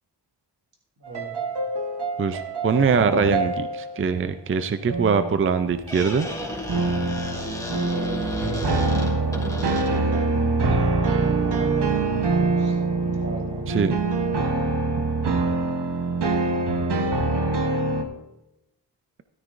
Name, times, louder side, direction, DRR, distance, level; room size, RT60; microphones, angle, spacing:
voice 1, 1.0-1.4 7.9-10.8 11.4-13.6 16.9-17.2, right 1 dB, 55° right, -2 dB, 3.7 m, -38 dB
sound 1, 1.1-3.9 4.9-5.5 6.7-18.0, right 3 dB, 70° right, 1.1 m, -24 dB
voice 2, 2.2-6.3 13.7-13.9, right 5 dB, 30° right, 10 dB, 0.4 m, -22 dB
Squeak, 5.6-10.3, left 1 dB, 10° left, 2.4 m, -32 dB
13.5 x 13.0 x 2.6 m, 0.94 s
wide cardioid pair, 125°, 42 cm